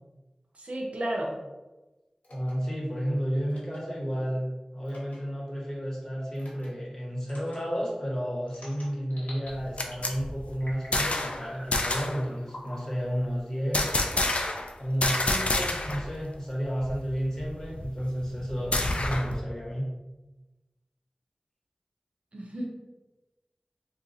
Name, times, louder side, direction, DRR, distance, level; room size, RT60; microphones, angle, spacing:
voice 1, 0.5-1.3 22.3-22.7, right 1 dB, 70° right, -1 dB, 0.6 m, -32 dB
sound 1, 2.2-2.5 3.5-3.8 4.9-5.2 6.4-6.7 7.2-7.6 8.5-9.5 9.9-10.2 10.6-11.0 11.4-11.7 12.5-12.8 13.6-14.5, equal, 85° left, 1.1 m, -46 dB
voice 2, 2.3-13.9 14.8-19.9, equal, 25° left, -4 dB, 1.1 m, -32 dB
sound 2, 9.5-11.4 11.7-12.2 13.7-14.7 15.0-16.1 16.4-16.5 16.8-19.4, left 2 dB, 60° left, 0.4 m, -28 dB
2.7 x 2.3 x 3.9 m, 1.1 s
wide cardioid pair, 60°, 2 cm